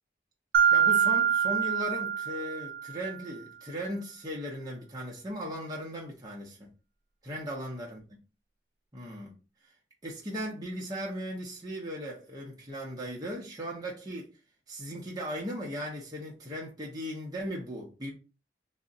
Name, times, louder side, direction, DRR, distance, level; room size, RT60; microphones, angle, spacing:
Mallet percussion, 0.5-3.1, right 8 dB, 85° right, 0.4 m, -25 dB
voice 1, 0.7-6.7 7.2-8.0 8.9-9.3 9.6-9.7 10.0-14.3 14.7-18.1, equal, 20° right, 0.6 m, -37 dB
2.4 x 2.0 x 3.6 m
head